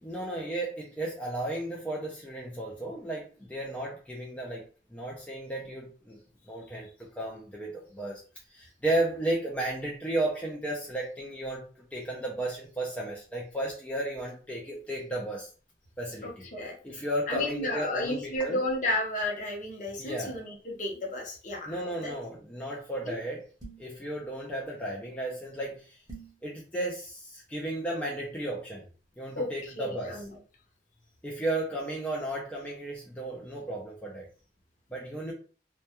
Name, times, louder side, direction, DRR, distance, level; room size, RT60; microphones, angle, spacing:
voice 1, 0.0-4.7 4.9-6.2 6.5-6.9 7.1-8.2 8.5-15.5 16.0-16.5 16.8-18.6 20.0-20.4 21.7-23.4 23.8-26.0 26.4-28.8 29.2-30.2 31.2-34.3 34.9-35.3, right 1 dB, 10° left, -4 dB, 0.4 m, -34 dB
voice 2, 16.2-16.8 17.3-22.1 23.1-23.2 29.4-30.3, left 1 dB, 45° left, -1 dB, 0.7 m, -33 dB
sound 1, 23.6-24.0 26.1-26.4, right 3 dB, 20° right, 0.7 m, -45 dB
2.2 x 2.2 x 2.8 m, 0.38 s
head